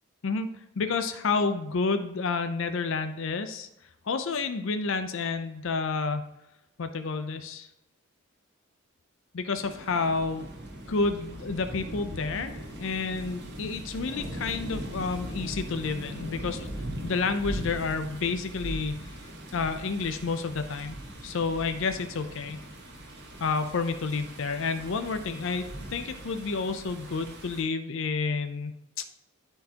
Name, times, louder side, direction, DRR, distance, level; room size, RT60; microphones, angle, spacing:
voice 1, 0.8-3.7 4.0-6.2 6.8-7.7 9.3-10.5 10.9-16.7 17.0-19.1 19.5-21.0 21.2-22.6 23.4-29.0, left 4 dB, 60° left, 9 dB, 0.5 m, -30 dB
sound 1, 9.5-27.6, right 1 dB, 50° right, 1.6 m, -40 dB
12.5 x 4.5 x 2.9 m, 0.86 s
head